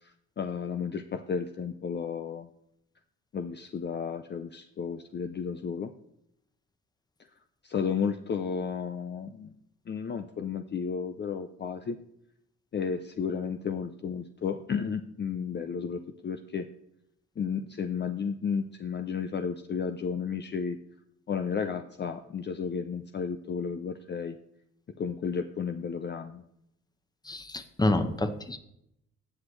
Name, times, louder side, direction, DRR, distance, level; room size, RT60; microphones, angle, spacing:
voice 1, 0.0-2.5 3.3-5.9 7.6-9.5 9.9-12.0 12.7-16.7 17.4-20.8 21.3-24.4 25.0-26.4, left 6 dB, 35° left, 8 dB, 0.6 m, -33 dB
voice 2, 27.2-28.6, left 2 dB, 15° left, 9 dB, 1.0 m, -28 dB
17.5 x 6.2 x 3.2 m, 0.77 s
cardioid pair, 90°, 30 cm